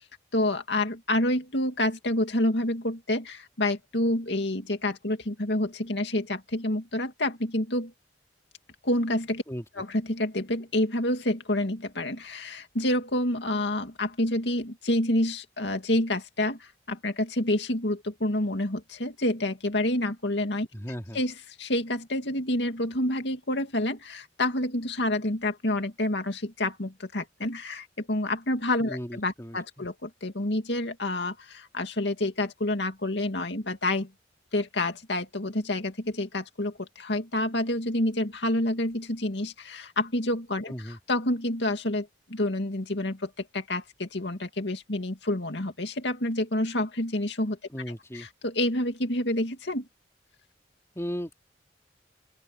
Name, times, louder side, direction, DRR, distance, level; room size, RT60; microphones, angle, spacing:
voice 1, 0.3-7.9 8.8-9.4 9.8-20.7 21.1-21.3 21.6-34.1 34.5-40.7 41.1-47.6 48.1-49.9, left 1 dB, 70° left, 2.4 m, -28 dB
voice 2, 20.7-21.2 28.9-29.9 40.7-41.0 47.7-48.3 50.9-51.3, equal, 15° left, 2.9 m, -36 dB
open air
head